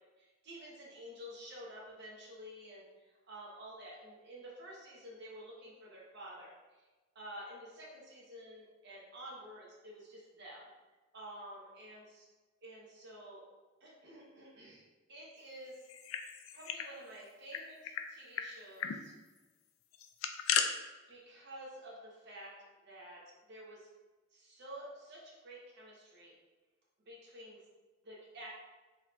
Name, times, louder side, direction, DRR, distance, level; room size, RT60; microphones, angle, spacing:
voice 1, 0.2-6.9 7.1-10.7 11.1-12.2 12.6-13.4 13.8-14.8 15.1-15.8 16.5-19.1 21.1-22.5 22.8-23.2 23.5-23.9 24.3-26.3 27.0-27.6 28.0-28.5, right 1 dB, 55° right, -5 dB, 1.0 m, -50 dB
sound 1, 15.8-16.9 17.2-17.3 17.5-18.0 18.3-18.5 18.8-19.0 19.9-20.7, left 8 dB, 75° left, 0.3 m, -35 dB
4.1 x 2.9 x 2.4 m, 1.3 s
head